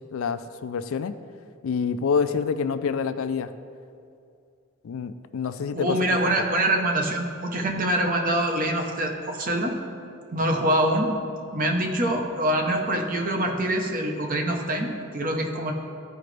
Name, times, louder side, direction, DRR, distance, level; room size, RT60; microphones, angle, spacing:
voice 1, 0.1-1.1 1.6-3.5 4.8-6.0, left 6 dB, 75° left, 12 dB, 0.4 m, -27 dB
voice 2, 5.7-9.8 10.3-11.1 11.5-15.7, right 1 dB, 40° right, 2 dB, 0.9 m, -25 dB
13.5 x 5.0 x 3.3 m, 2.5 s
head